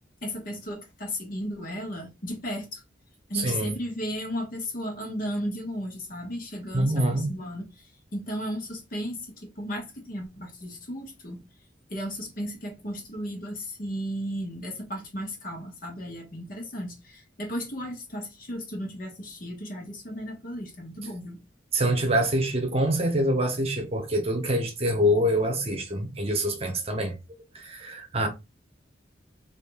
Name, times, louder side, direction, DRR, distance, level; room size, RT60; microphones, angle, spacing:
voice 1, 0.2-2.8 3.3-11.4 11.9-21.4, equal, 50° left, 1.3 m, -35 dB
voice 2, 3.3-3.7 6.7-7.3 21.7-27.2 27.5-28.3, equal, 35° right, 0.9 m, -25 dB
5.1 x 2.8 x 2.3 m
head